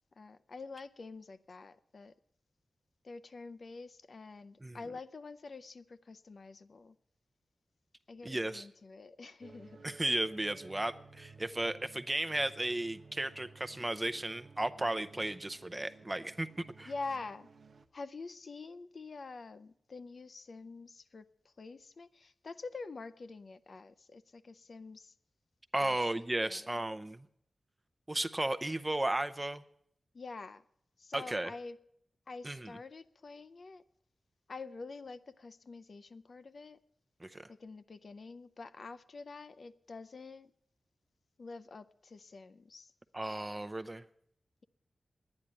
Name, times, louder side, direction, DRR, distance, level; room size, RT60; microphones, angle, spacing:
voice 1, 0.2-2.1 3.0-7.0 8.1-9.8 16.9-17.5 17.9-25.1 25.8-26.0 26.4-26.7 30.1-30.6 31.0-31.8 32.3-33.8 34.5-36.8 37.5-40.5 41.4-42.9, left 3 dB, 60° left, 0.6 m, -46 dB
voice 2, 8.2-8.7 9.8-16.5 16.8-16.9 25.7-27.3 28.1-29.6 31.1-31.5 32.4-32.8 37.2-37.5 43.1-44.0, right 1 dB, 20° right, 0.6 m, -34 dB
sound 1, 9.4-17.9, right 4 dB, 75° right, 0.8 m, -56 dB
10.5 x 9.8 x 8.8 m
wide cardioid pair, 95°, 0 cm